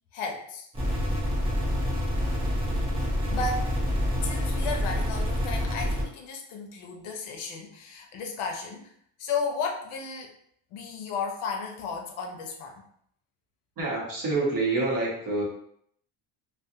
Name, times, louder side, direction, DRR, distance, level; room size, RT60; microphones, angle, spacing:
voice 1, 0.1-1.1 3.3-3.7 4.1-8.9 9.2-10.3 10.7-12.8, left 4 dB, 75° left, 2 dB, 0.7 m, -34 dB
sound 1, 0.7-6.0, equal, 10° right, 0.6 m, -27 dB
voice 2, 13.8-15.4, right 3 dB, 40° right, -4 dB, 0.9 m, -27 dB
2.4 x 2.2 x 2.7 m, 0.68 s
cardioid pair, 150°, 49 cm